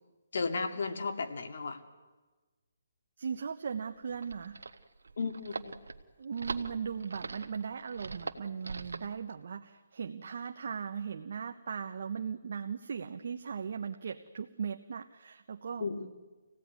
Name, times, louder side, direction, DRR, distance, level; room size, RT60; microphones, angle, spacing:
voice 1, 0.3-1.8 5.2-5.7 15.8-16.1, left 4 dB, 65° left, 6 dB, 2.3 m, -34 dB
voice 2, 3.2-4.6 6.2-15.8, right 6 dB, 60° right, 6 dB, 1.1 m, -38 dB
sound 1, 3.9-9.1, right 4 dB, 90° right, 1.5 m, -42 dB
26.0 x 17.0 x 9.6 m, 1.3 s
hypercardioid pair, 160°, 0 cm